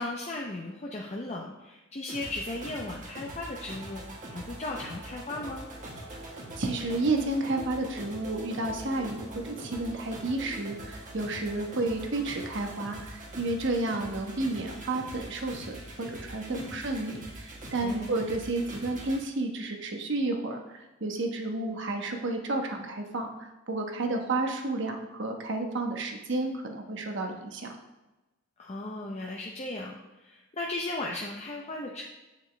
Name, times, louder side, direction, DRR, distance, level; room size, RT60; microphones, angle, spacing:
voice 1, 0.0-4.0 4.3-5.6 16.5-16.9 17.8-18.2 28.6-30.0 30.2-32.0, left 2 dB, 30° left, -1 dB, 0.7 m, -36 dB
sound 1, 2.1-19.2, right 1 dB, 40° right, 1.5 m, -43 dB
voice 2, 6.6-23.3 23.7-27.7, right 2 dB, 60° right, 3 dB, 1.1 m, -31 dB
7.9 x 7.1 x 3.3 m, 1.1 s
head